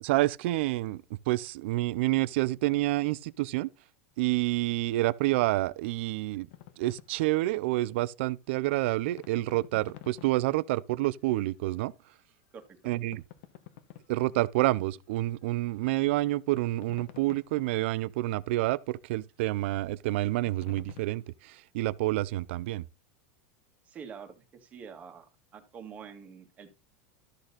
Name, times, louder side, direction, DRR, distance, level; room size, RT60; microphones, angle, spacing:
voice 1, 0.0-3.7 4.2-6.5 6.8-11.9 12.8-13.2 14.1-22.8, right 18 dB, 60° right, 0.5 m, -28 dB
sound 1, 6.5-7.1 9.1-10.5 12.9-14.2 16.6-17.8 20.4-21.3, left 13 dB, 55° left, 1.3 m, -49 dB
voice 2, 12.5-12.9 23.8-25.2 25.5-26.7, right 6 dB, 20° right, 1.7 m, -46 dB
13.0 x 6.5 x 4.0 m
supercardioid pair, 165°, 7 cm